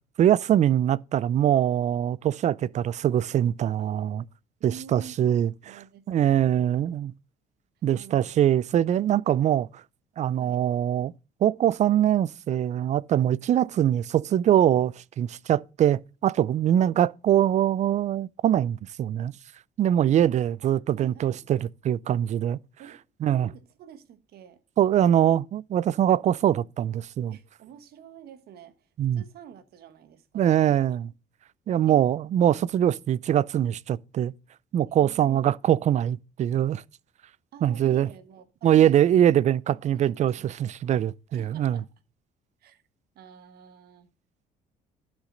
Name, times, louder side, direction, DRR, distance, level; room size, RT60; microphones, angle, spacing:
voice 1, 0.2-4.2 4.6-5.8 6.1-7.1 7.8-9.7 10.2-11.1 11.4-19.3 19.8-21.6 21.8-22.6 23.2-23.5 24.8-27.4 29.0-29.2 30.3-31.1 31.7-34.3 34.7-36.8 37.6-38.1 38.6-41.8, right 10 dB, 45° right, 0.4 m, -23 dB
voice 2, 4.6-6.6 7.9-8.4 10.4-10.6 20.6-21.5 22.8-23.0 23.3-24.6 27.3-30.9 31.9-32.0 34.9-35.4 37.5-39.1 39.8-40.7 41.3-41.9 42.6-42.8 43.1-44.1, right 8 dB, 65° right, 1.4 m, -48 dB
11.5 x 6.5 x 3.9 m
cardioid pair, 110°, 17 cm